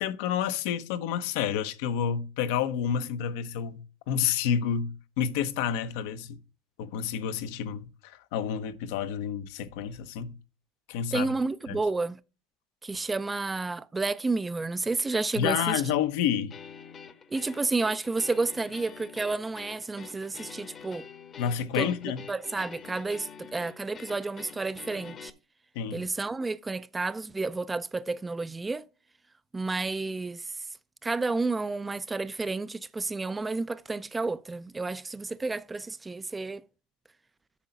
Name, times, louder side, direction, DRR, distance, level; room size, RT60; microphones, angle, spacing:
voice 1, 0.0-6.4 6.8-10.3 10.9-11.3 11.7-11.8 15.4-16.5 21.4-22.2 25.7-26.1, left 8 dB, 70° left, 0.9 m, -29 dB
voice 2, 11.1-12.2 12.8-15.8 17.3-21.0 21.7-21.9 22.3-25.3 25.9-28.9 29.5-30.4 31.0-36.6, right 3 dB, 15° right, 0.5 m, -31 dB
sound 1, 16.5-25.3, left 6 dB, 35° left, 1.0 m, -46 dB
8.4 x 5.7 x 5.2 m
hypercardioid pair, 90°, 0 cm